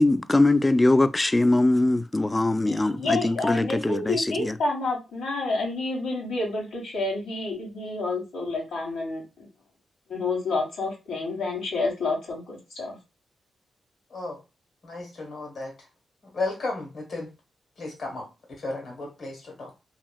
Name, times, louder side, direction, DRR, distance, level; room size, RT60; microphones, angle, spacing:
voice 1, 0.0-4.5, left 2 dB, 25° left, 0.3 m, -22 dB
voice 2, 2.6-9.5 10.1-12.9, left 3 dB, 90° left, 1.4 m, -29 dB
voice 3, 14.8-15.7 16.3-17.3 17.8-18.2 18.6-19.7, left 2 dB, 70° left, 1.6 m, -33 dB
2.9 x 2.8 x 2.3 m
supercardioid pair, 50°, 0 cm